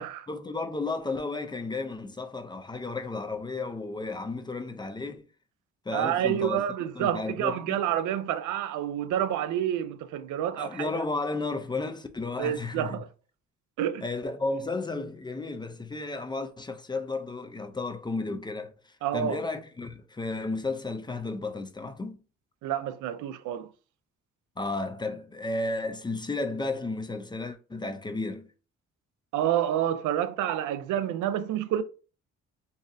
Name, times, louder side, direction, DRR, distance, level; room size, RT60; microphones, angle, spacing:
voice 1, 0.3-5.3 5.9-6.7 6.9-7.8 10.6-13.0 14.0-18.7 19.1-22.2 24.6-28.5, left 3 dB, 15° left, 0.4 m, -33 dB
voice 2, 5.9-11.0 12.4-13.1 13.8-14.0 19.0-19.4 22.6-23.7 29.3-31.8, right 10 dB, 80° right, 0.5 m, -28 dB
4.0 x 2.5 x 2.5 m
cardioid pair, 90°, 30 cm